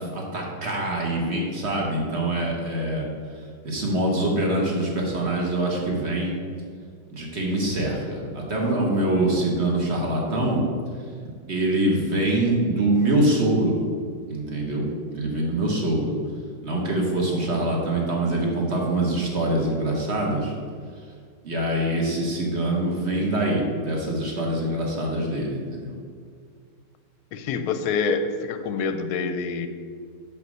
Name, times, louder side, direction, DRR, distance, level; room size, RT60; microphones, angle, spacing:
voice 1, 0.0-3.1 3.6-6.4 7.1-10.6 11.5-13.7 14.3-14.9 15.1-16.1 16.6-20.5 21.4-25.9, right 1 dB, 40° right, -1 dB, 1.4 m, -24 dB
voice 2, 27.3-29.7, left 5 dB, 70° left, 8 dB, 1.0 m, -26 dB
5.8 x 5.5 x 6.1 m, 2.1 s
omnidirectional pair, 1.9 m